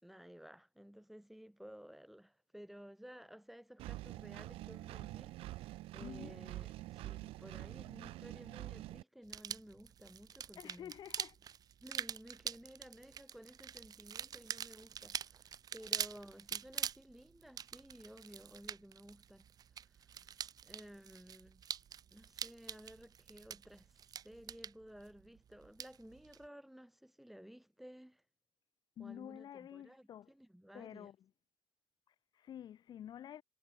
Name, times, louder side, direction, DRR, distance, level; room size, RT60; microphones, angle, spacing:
voice 1, 0.0-10.9 11.8-19.4 19.7-20.4 20.6-21.6 22.1-28.2 29.0-31.1, equal, ahead, 4.8 m, -55 dB
Engine, 3.8-9.0, right 17 dB, 85° right, 2.3 m, -46 dB
voice 2, 6.0-6.4 10.6-11.3 29.0-30.3 30.7-31.2 32.1-33.4, left 10 dB, 50° left, 1.3 m, -49 dB
sound 1, 9.3-26.5, right 8 dB, 45° right, 1.8 m, -45 dB
cardioid pair, 140°, 9 cm